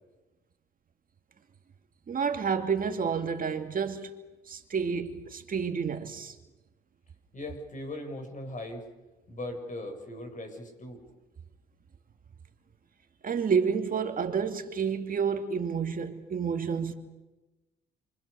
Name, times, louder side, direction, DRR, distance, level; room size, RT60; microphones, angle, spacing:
voice 1, 2.1-4.1 4.5-6.3 13.2-16.9, right 6 dB, 45° right, 2.4 m, -29 dB
voice 2, 7.3-8.9 9.3-11.0, left 1 dB, 40° left, 7.5 m, -39 dB
29.0 x 25.0 x 6.9 m
cardioid pair, 90°, 20 cm